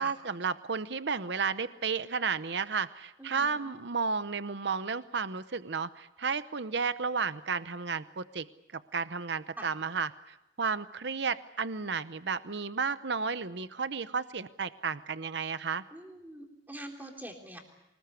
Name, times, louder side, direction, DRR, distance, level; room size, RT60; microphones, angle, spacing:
voice 1, 0.0-8.5 8.7-15.8, right 5 dB, 60° right, 13 dB, 0.8 m, -33 dB
voice 2, 3.2-3.7 9.6-9.7 15.9-17.6, right 1 dB, 10° right, 2 dB, 3.5 m, -45 dB
25.0 x 20.0 x 8.3 m, 0.90 s
head